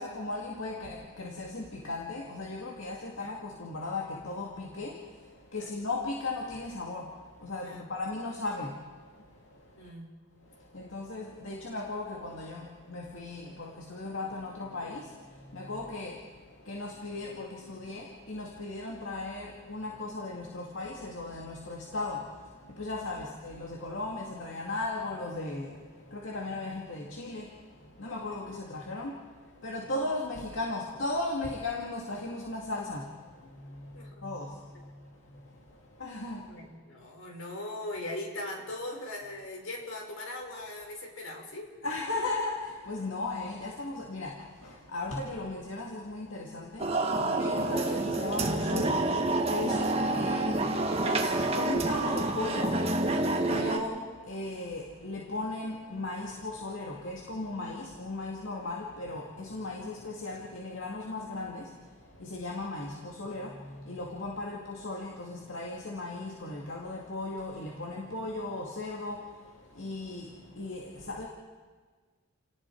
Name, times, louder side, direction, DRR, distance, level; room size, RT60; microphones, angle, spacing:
voice 1, 0.0-9.9 10.5-36.6 41.8-71.3, left 2 dB, 70° left, -2 dB, 2.3 m, -37 dB
voice 2, 9.7-10.1 26.2-26.6 33.9-34.2 34.7-34.8 36.5-41.7, left 1 dB, 90° left, 1 dB, 4.8 m, -40 dB
sound 1, 46.8-53.8, right 2 dB, 30° right, 1.7 m, -28 dB
29.5 x 18.5 x 4.8 m, 1.5 s
head